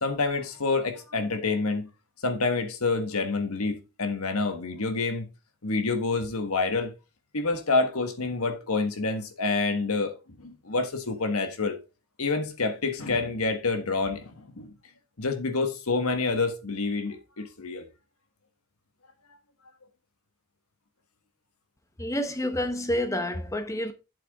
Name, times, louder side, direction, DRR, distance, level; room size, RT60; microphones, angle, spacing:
voice 1, 0.0-1.9 2.2-5.2 5.6-6.9 7.3-11.8 12.2-14.7 15.2-17.8, left 3 dB, 80° left, 1.5 m, -28 dB
voice 2, 22.0-23.9, left 1 dB, 15° left, 1.0 m, -28 dB
8.3 x 7.8 x 3.6 m
head